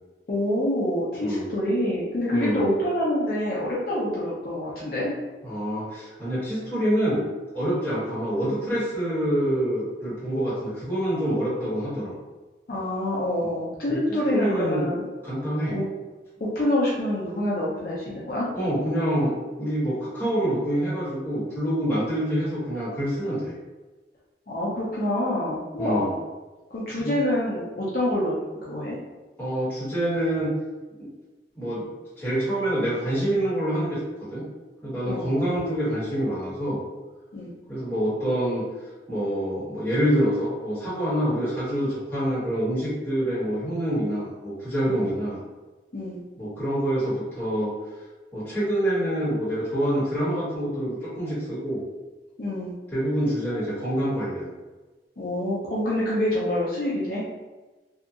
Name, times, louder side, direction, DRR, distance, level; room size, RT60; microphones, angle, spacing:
voice 1, 0.3-5.1 12.7-15.0 15.7-15.8 16.4-18.5 24.5-26.1 26.7-28.3 28.6-29.0 35.1-35.3 37.3-37.5 44.9-45.1 45.9-46.2 52.4-52.7 55.2-57.2, left 1 dB, 55° left, -7 dB, 0.6 m, -26 dB
voice 2, 2.3-2.6 5.4-7.2 7.5-12.1 13.8-14.0 14.3-14.9 15.2-15.7 18.5-23.5 25.8-26.1 27.0-27.1 29.4-30.5 31.0-31.1 31.5-31.9 32.2-34.0 34.3-34.4 34.8-36.8 37.7-38.6 39.1-45.4 46.4-47.7 48.3-51.8 52.9-54.5, right 1 dB, 10° left, -12 dB, 1.4 m, -26 dB
2.7 x 2.5 x 2.4 m, 1.2 s
head